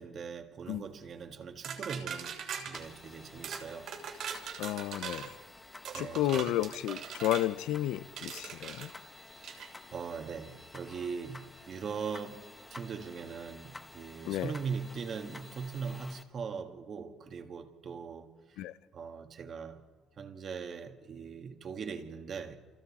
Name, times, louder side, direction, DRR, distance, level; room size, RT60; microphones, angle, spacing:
voice 1, 0.0-4.5 5.9-6.6 9.3-18.6 18.9-19.8 20.2-22.6, right 6 dB, 40° right, 1.5 m, -41 dB
sound 1, 1.6-2.8 3.4-3.6 3.9-5.3 5.8-7.5 8.2-8.9 9.4-9.7, right 7 dB, 55° right, 3.0 m, -40 dB
sound 2, 2.7-16.2, left 2 dB, 15° left, 1.0 m, -51 dB
voice 2, 4.6-5.3 5.9-8.9 14.2-14.5 18.6-18.7, left 14 dB, 85° left, 0.6 m, -32 dB
28.5 x 28.0 x 4.2 m
cardioid pair, 155°, 0 cm